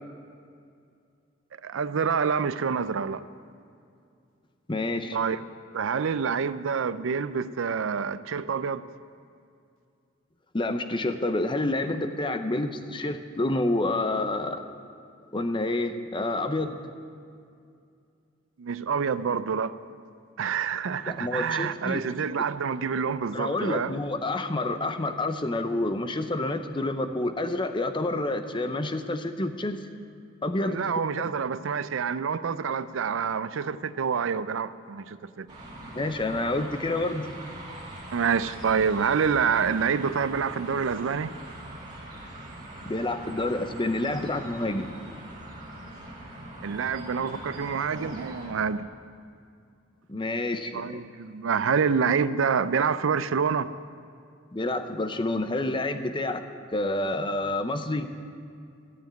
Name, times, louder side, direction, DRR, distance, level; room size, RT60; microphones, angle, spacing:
voice 1, 1.6-3.2 5.1-5.4 5.7-8.8 18.6-19.7 20.4-23.9 30.6-35.5 38.1-41.3 46.6-48.9 50.7-53.7, right 6 dB, 70° right, 14 dB, 0.4 m, -27 dB
voice 2, 4.7-5.2 10.5-14.6 15.3-16.8 21.1-22.2 23.3-29.8 30.4-30.8 35.9-37.3 42.8-44.9 50.1-51.0 54.5-58.1, left 2 dB, 25° left, 8 dB, 0.7 m, -28 dB
sound 1, 35.5-48.5, right 1 dB, 25° right, 2.7 m, -42 dB
13.5 x 7.2 x 9.0 m, 2.4 s
head